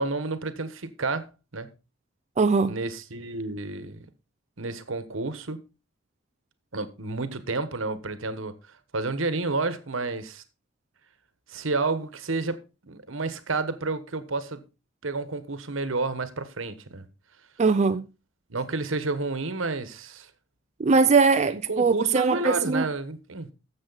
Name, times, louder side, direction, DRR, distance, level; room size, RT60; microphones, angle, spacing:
voice 1, 0.0-1.7 2.7-4.0 4.6-5.6 6.7-8.5 8.9-10.4 11.5-14.6 15.0-17.0 18.5-20.3 21.5-23.5, right 3 dB, 75° right, 1.2 m, -30 dB
voice 2, 2.4-2.8 17.6-18.1 20.8-22.9, right 4 dB, 35° right, 0.4 m, -21 dB
13.0 x 7.5 x 4.0 m
head